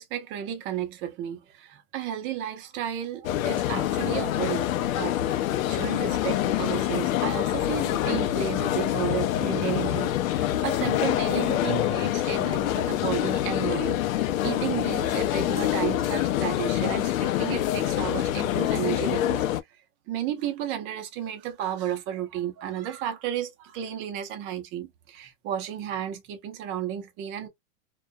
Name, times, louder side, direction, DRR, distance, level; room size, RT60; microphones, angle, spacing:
voice 1, 0.0-5.2 5.7-19.4 20.1-27.5, right 10 dB, 30° right, 0.7 m, -33 dB
sound 1, 3.2-19.6, left 13 dB, 75° left, 0.6 m, -26 dB
2.4 x 2.2 x 2.5 m
supercardioid pair, 150°, 41 cm